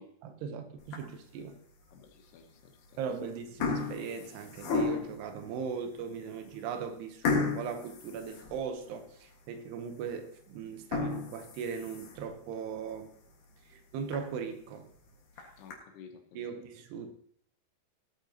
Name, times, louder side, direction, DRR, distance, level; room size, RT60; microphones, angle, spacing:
voice 1, 0.2-1.6 3.0-13.1 13.7-14.9 16.4-17.1, right 6 dB, 85° right, 7 dB, 3.0 m, -39 dB
sound 1, 0.8-1.3 1.9-2.0 2.9-3.1 3.4-5.3 5.9-6.0 6.3-6.4 7.2-9.0 9.4-9.5 10.0-10.1 10.7-12.3 12.8-12.9 13.3-13.4 13.7-13.8 14.1-14.2 15.1-15.7, left 4 dB, 55° left, 2.8 m, -33 dB
voice 2, 1.9-3.0 15.6-16.6, left 6 dB, 80° left, 4 dB, 3.0 m, -53 dB
17.5 x 8.9 x 2.8 m, 0.64 s
omnidirectional pair, 4.7 m